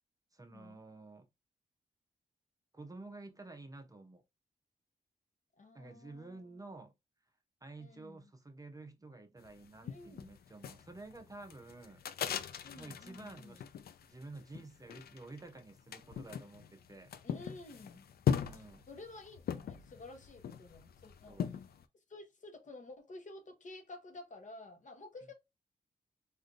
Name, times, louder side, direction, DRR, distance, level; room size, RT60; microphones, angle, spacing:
voice 1, 0.3-1.3 2.7-4.2 5.7-6.9 7.6-12.0 12.8-13.6 14.0-17.1 18.4-18.9 21.3-21.5, right 2 dB, 20° right, 0.6 m, -51 dB
voice 2, 5.6-6.6 7.8-8.3 9.8-10.4 12.6-13.6 17.2-18.1 18.5-21.5 22.1-25.3, left 2 dB, 50° left, 0.9 m, -52 dB
sound 1, 9.4-21.8, left 8 dB, 70° left, 0.4 m, -40 dB
3.7 x 2.5 x 2.5 m
cardioid pair, 75°, 16 cm